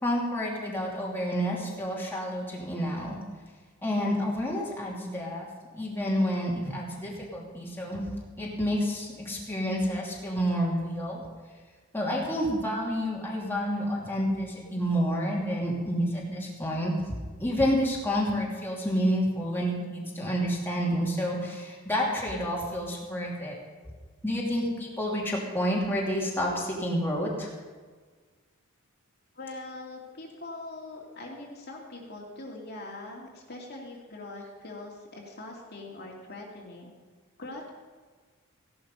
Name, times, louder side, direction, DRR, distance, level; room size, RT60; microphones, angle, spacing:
voice 1, 0.0-3.2 3.8-5.5 5.7-8.1 8.4-11.2 11.9-17.1 17.4-23.5 24.2-27.5 31.2-31.3, equal, 10° left, -4 dB, 2.9 m, -29 dB
voice 2, 29.4-36.9 37.4-37.7, left 2 dB, 45° left, -2 dB, 2.5 m, -42 dB
16.0 x 11.5 x 5.6 m, 1.5 s
head